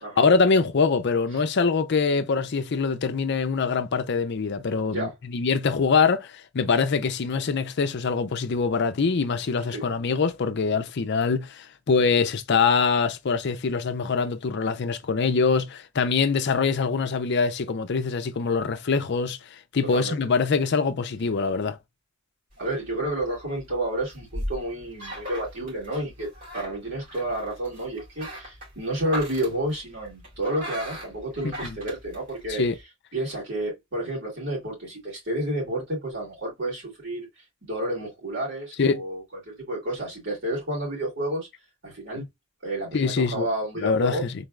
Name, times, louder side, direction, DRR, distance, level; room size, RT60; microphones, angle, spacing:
voice 1, 0.2-21.8 31.4-31.8 32.6-32.8 38.8-39.0 42.1-42.2 42.9-43.5 43.8-44.3, left 5 dB, 55° left, 0.5 m, -24 dB
voice 2, 4.8-5.1 9.7-9.9 19.9-20.2 22.6-26.3 26.5-32.6 33.1-37.3 37.6-41.5 41.8-42.3 42.6-44.2, right 1 dB, 55° right, 2.8 m, -30 dB
sound 1, 22.5-32.8, equal, 40° right, 2.4 m, -39 dB
3.9 x 3.3 x 2.4 m
head